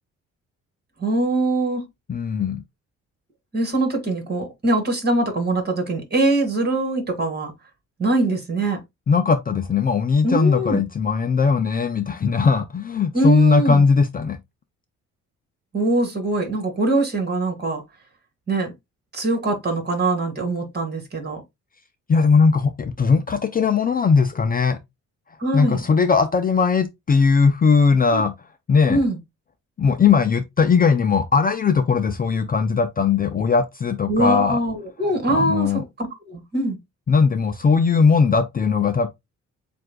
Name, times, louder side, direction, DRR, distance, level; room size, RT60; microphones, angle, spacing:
voice 1, 1.0-1.8 3.5-7.5 8.0-8.8 10.2-10.8 13.1-13.8 15.7-17.8 18.5-18.7 19.1-21.4 25.4-25.8 28.1-28.2 28.9-29.2 34.1-36.8, right 2 dB, 35° right, 2.0 m, -22 dB
voice 2, 2.1-2.6 9.1-14.4 22.1-24.8 25.5-28.3 28.7-29.0 29.8-34.6 35.3-35.8 37.1-39.1, left 5 dB, 30° left, 0.5 m, -19 dB
7.4 x 2.6 x 2.3 m
cardioid pair, 90°, 30 cm